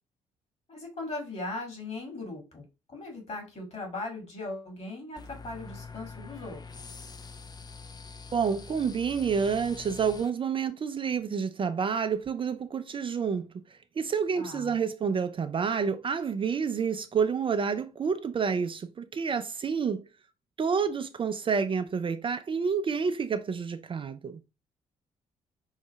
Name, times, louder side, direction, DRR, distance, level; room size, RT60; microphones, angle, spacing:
voice 1, 0.7-2.6 2.9-7.0 14.4-14.8, left 2 dB, 40° left, 2.1 m, -39 dB
sound 1, 5.2-10.3, left 4 dB, 25° left, 0.5 m, -44 dB
voice 2, 8.3-13.5 14.0-20.0 20.6-24.4, right 6 dB, 30° right, 0.4 m, -29 dB
5.5 x 2.7 x 3.2 m
figure-of-eight pair, 40°, 17 cm